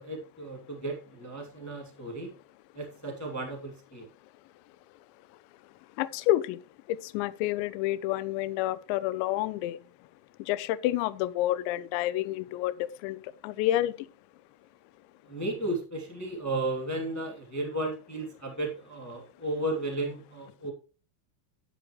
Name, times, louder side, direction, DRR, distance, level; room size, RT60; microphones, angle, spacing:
voice 1, 0.0-2.3 2.7-4.1 15.3-20.7, right 1 dB, 20° left, 0.4 m, -34 dB
voice 2, 6.0-6.6 6.9-9.8 10.4-14.1, left 14 dB, 80° left, 2.8 m, -29 dB
12.0 x 10.0 x 3.1 m
omnidirectional pair, 5.5 m